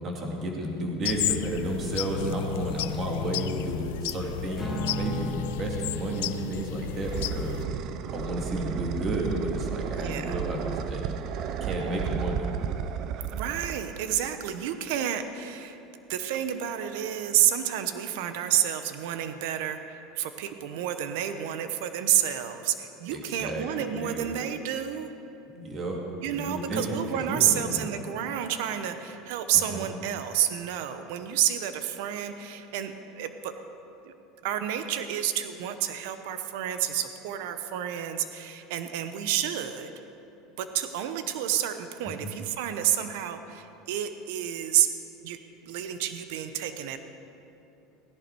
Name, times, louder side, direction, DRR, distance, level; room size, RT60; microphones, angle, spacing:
voice 1, 0.0-7.6 8.1-11.0 11.6-12.4 23.1-24.3 25.5-26.0 26.3-26.8 27.1-27.9 29.5-29.9 42.0-42.3, right 1 dB, 35° right, 0 dB, 2.4 m, -32 dB
sound 1, 1.0-7.6, left 14 dB, 85° left, 0.4 m, -33 dB
Acoustic guitar / Strum, 4.6-9.0, right 2 dB, 10° left, 3.1 m, -38 dB
sound 2, 6.4-14.4, right 8 dB, 50° right, 0.6 m, -33 dB
voice 2, 10.0-10.4 13.3-15.8 16.1-25.1 26.2-33.5 34.0-34.1 34.4-39.9 40.6-44.9 45.2-45.4 45.6-47.0, right 11 dB, 75° right, 9 dB, 0.9 m, -29 dB
17.0 x 11.0 x 4.7 m, 2.9 s
supercardioid pair, 135°, 0 cm